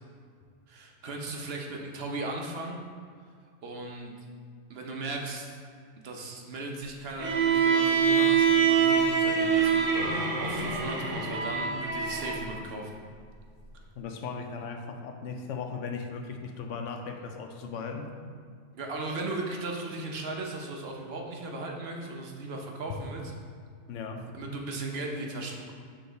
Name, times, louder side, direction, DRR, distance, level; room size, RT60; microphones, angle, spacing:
voice 1, 0.7-2.8 3.6-4.1 4.7-5.6 6.0-13.0 18.7-23.3 24.3-25.7, right 2 dB, 60° right, 1 dB, 1.0 m, -37 dB
Bowed string instrument, 7.2-12.4, right 6 dB, 90° right, 1.2 m, -25 dB
voice 2, 14.0-18.1 23.9-24.3, left 5 dB, 85° left, 4 dB, 1.0 m, -37 dB
6.7 x 3.8 x 3.9 m, 2.1 s
omnidirectional pair, 1.2 m